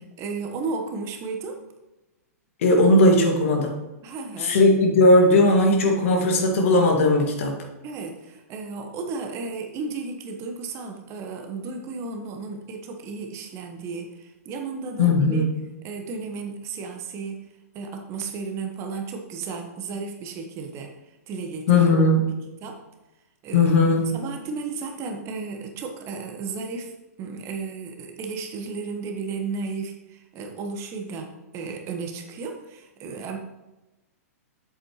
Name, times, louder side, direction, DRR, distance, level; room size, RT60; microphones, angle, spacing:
voice 1, 0.2-1.6 4.0-4.6 7.8-15.5 15.8-17.4 17.7-21.9 22.6-22.8 23.4-23.7 24.1-26.9 27.2-33.4, right 4 dB, 35° right, 3 dB, 1.3 m, -34 dB
voice 2, 2.6-3.8 4.4-7.5 15.0-15.6 21.7-22.3 23.5-24.2, left 2 dB, 60° left, 1 dB, 2.0 m, -18 dB
8.3 x 7.6 x 3.1 m, 1.0 s
figure-of-eight pair, 110°, 8 cm